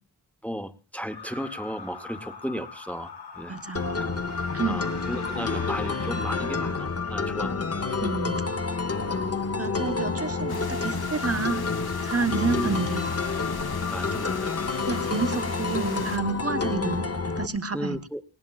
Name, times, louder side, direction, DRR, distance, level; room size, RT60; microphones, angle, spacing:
voice 1, 0.4-3.5 4.7-7.5 12.5-12.8 13.9-14.5 17.7-18.2, equal, 5° left, 9 dB, 0.8 m, -34 dB
sound 1, 1.1-7.5, left 4 dB, 80° left, 3.1 m, -42 dB
voice 2, 3.5-3.9 4.5-4.8 8.0-8.5 9.6-11.6 12.0-13.0 14.9-17.1 17.4-18.0, right 4 dB, 35° right, 10 dB, 1.0 m, -29 dB
sound 2, 3.8-17.5, left 4 dB, 35° left, 0.8 m, -29 dB
sound 3, 10.5-16.2, left 5 dB, 65° left, 0.9 m, -39 dB
18.5 x 18.0 x 2.3 m, 0.32 s
wide cardioid pair, 60°, 40 cm